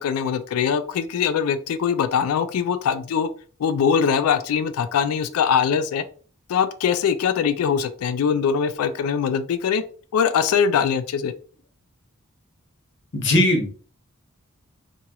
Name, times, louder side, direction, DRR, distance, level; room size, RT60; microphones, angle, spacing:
voice 1, 0.0-3.3 3.6-6.0 6.5-9.8 10.1-11.3, left 7 dB, 85° left, 11 dB, 0.3 m, -22 dB
voice 2, 13.1-13.7, left 1 dB, 55° left, 2 dB, 0.8 m, -19 dB
2.9 x 2.3 x 2.9 m, 0.41 s
head